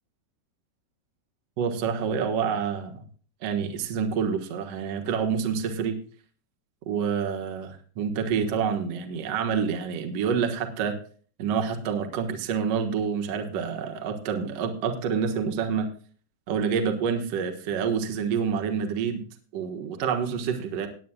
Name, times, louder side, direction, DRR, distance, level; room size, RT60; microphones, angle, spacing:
voice 1, 1.6-2.9 3.4-6.0 6.9-11.0 11.4-15.9 16.5-19.2 19.5-20.9, right 6 dB, 60° right, 4 dB, 1.8 m, -27 dB
20.0 x 9.3 x 2.3 m, 0.42 s
omnidirectional pair, 4.7 m